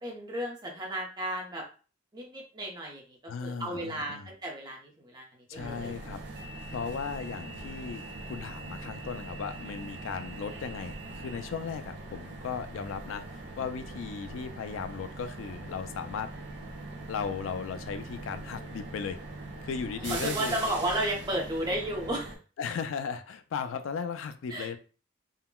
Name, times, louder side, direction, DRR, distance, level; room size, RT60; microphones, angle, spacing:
voice 1, 0.0-1.6 2.1-5.9 20.0-22.3 24.5-24.7, right 1 dB, 20° right, -1 dB, 0.7 m, -33 dB
voice 2, 3.3-4.3 5.5-6.2 6.7-16.3 17.1-19.2 19.6-20.6 22.6-24.8, left 6 dB, 75° left, 9 dB, 0.3 m, -36 dB
sound 1, 5.5-22.4, right 2 dB, 55° right, 0.5 m, -42 dB
3.7 x 2.1 x 2.2 m, 0.36 s
head